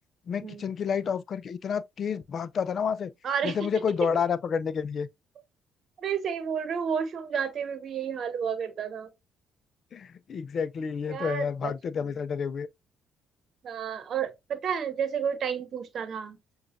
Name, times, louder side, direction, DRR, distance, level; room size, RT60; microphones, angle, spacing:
voice 1, 0.3-3.1 3.4-5.1 9.9-12.7, left 6 dB, 55° left, 0.4 m, -29 dB
voice 2, 3.2-3.6 6.0-9.1 11.1-11.7 13.6-16.4, right 7 dB, 60° right, 1.0 m, -31 dB
6.5 x 2.4 x 2.5 m
hypercardioid pair, 60°, 0 cm